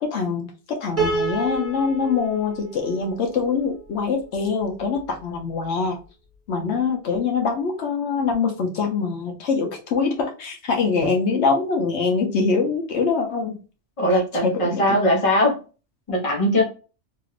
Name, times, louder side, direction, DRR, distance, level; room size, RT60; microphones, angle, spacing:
voice 1, 0.0-6.0 6.5-13.6 14.1-15.0, left 5 dB, 70° left, 2 dB, 0.9 m, -24 dB
Piano, 1.0-4.2, right 3 dB, 40° right, 1.5 m, -29 dB
voice 2, 14.0-15.6 16.1-16.6, left 1 dB, 30° left, -1 dB, 0.9 m, -20 dB
2.9 x 2.4 x 3.1 m, 0.34 s
omnidirectional pair, 1.2 m